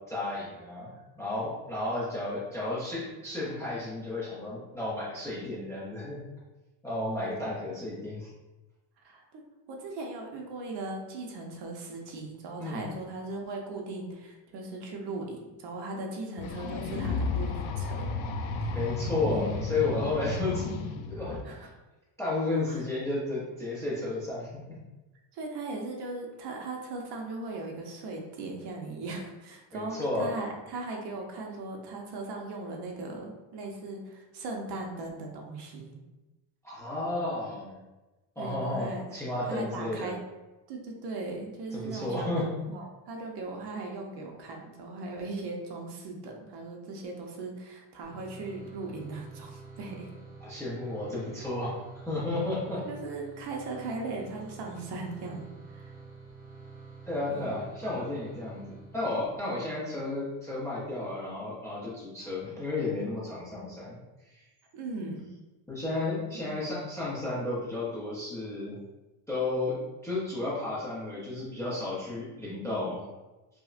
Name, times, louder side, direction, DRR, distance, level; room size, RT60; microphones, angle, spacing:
voice 1, 0.1-6.2 6.8-8.3 12.6-12.9 18.7-20.7 21.1-21.3 22.2-24.6 29.7-30.3 36.6-37.8 38.4-40.1 41.7-42.6 50.4-51.7 52.1-52.8 57.1-64.0 65.7-68.8 69.3-69.8 70.0-73.0, left 2 dB, 5° left, -9 dB, 0.5 m, -32 dB
voice 2, 9.0-9.4 9.7-18.1 18.7-18.8 19.3-19.4 21.4-21.7 22.7-22.8 25.3-36.0 38.4-39.0 39.5-40.2 40.7-50.1 52.7-55.9 57.3-57.5 64.7-65.3 66.3-66.6, right 3 dB, 55° right, 1 dB, 0.7 m, -38 dB
sound 1, 16.4-21.4, left 3 dB, 75° left, 0.5 m, -33 dB
sound 2, 48.0-59.4, right 4 dB, 20° right, 1.4 m, -48 dB
5.1 x 2.1 x 2.4 m, 1.1 s
cardioid pair, 175°, 48 cm